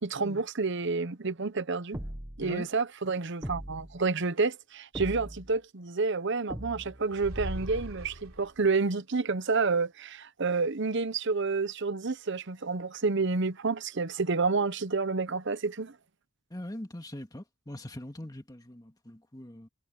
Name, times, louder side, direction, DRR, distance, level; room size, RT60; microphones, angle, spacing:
voice 1, 0.0-2.0 2.4-15.9, right 4 dB, 55° right, 0.9 m, -29 dB
sound 1, 1.9-2.5 3.4-4.0 4.9-5.6 6.5-7.1, equal, 10° right, 1.0 m, -40 dB
sound 2, 7.1-8.8, right 1 dB, 80° right, 3.4 m, -39 dB
voice 2, 16.5-19.7, left 1 dB, 15° left, 2.0 m, -42 dB
head